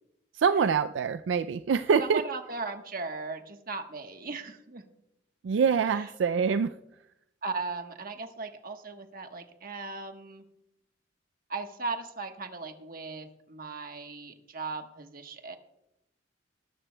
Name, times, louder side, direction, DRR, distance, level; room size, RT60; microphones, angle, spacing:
voice 1, 0.3-2.2 5.4-6.7, right 6 dB, 80° right, 11 dB, 0.4 m, -25 dB
voice 2, 2.0-4.8 5.8-6.1 7.4-10.4 11.5-15.6, right 3 dB, 55° right, 6 dB, 1.2 m, -37 dB
19.5 x 13.0 x 2.2 m, 0.84 s
head